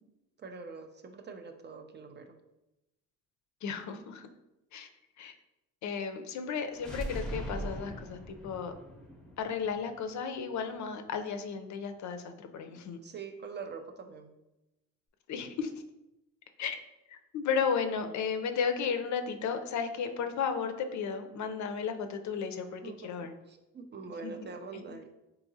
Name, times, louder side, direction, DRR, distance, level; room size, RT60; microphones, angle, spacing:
voice 1, 0.4-2.4 12.7-14.3 22.8-23.1 23.5-25.1, right 5 dB, 30° right, 6 dB, 0.4 m, -44 dB
voice 2, 3.6-4.3 4.7-4.9 5.2-5.3 5.8-8.7 9.4-13.0 15.3-15.7 16.6-16.8 17.1-23.3 24.2-24.3, left 6 dB, 55° left, 7 dB, 0.5 m, -34 dB
sound 1, 6.7-10.6, right 1 dB, ahead, 0.7 m, -41 dB
3.6 x 2.8 x 2.6 m, 0.94 s
supercardioid pair, 70°, 35 cm